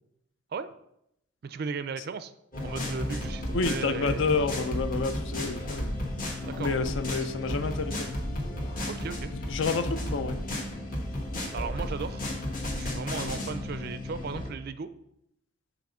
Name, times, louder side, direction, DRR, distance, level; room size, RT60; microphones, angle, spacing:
voice 1, 1.4-2.3 2.6-4.2 6.4-6.8 7.1-7.3 8.9-9.3 11.5-12.3 12.8-14.9, right 5 dB, 50° right, 13 dB, 0.3 m, -36 dB
sound 1, 2.5-14.5, left 1 dB, 45° left, 1.3 m, -33 dB
voice 2, 3.5-6.0 6.6-8.2 9.3-10.4, left 4 dB, 65° left, 11 dB, 0.5 m, -29 dB
6.0 x 4.0 x 5.4 m, 0.79 s
head